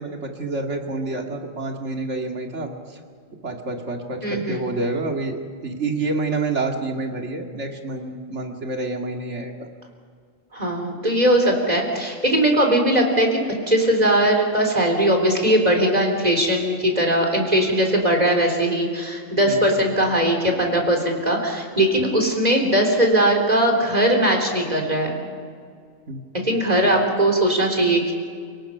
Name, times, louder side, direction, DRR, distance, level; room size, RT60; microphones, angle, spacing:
voice 1, 0.0-3.0 3.4-5.4 5.6-9.7 19.4-19.6 26.1-26.2 26.5-26.6, right 3 dB, 65° right, 2 dB, 2.6 m, -28 dB
voice 2, 4.2-4.6 10.5-13.4 13.7-25.2 26.4-28.1, right 1 dB, 30° right, 1 dB, 3.9 m, -20 dB
29.0 x 18.5 x 5.7 m, 2.1 s
omnidirectional pair, 1.3 m